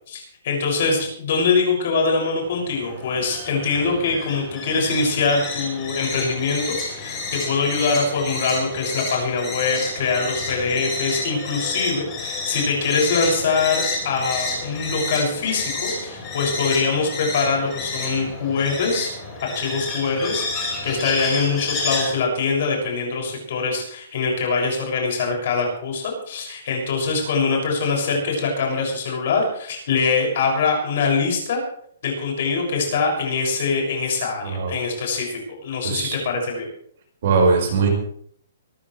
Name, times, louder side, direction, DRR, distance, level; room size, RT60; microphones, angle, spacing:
voice 1, 0.1-19.1 19.4-31.6 32.0-36.7, left 4 dB, 45° left, 0 dB, 6.7 m, -23 dB
sound 1, 2.4-22.1, left 3 dB, 15° left, 5.2 m, -30 dB
voice 2, 35.8-36.2 37.2-37.9, right 4 dB, 45° right, 1 dB, 5.4 m, -20 dB
24.0 x 14.0 x 3.3 m, 0.64 s
hypercardioid pair, 175°, 0 cm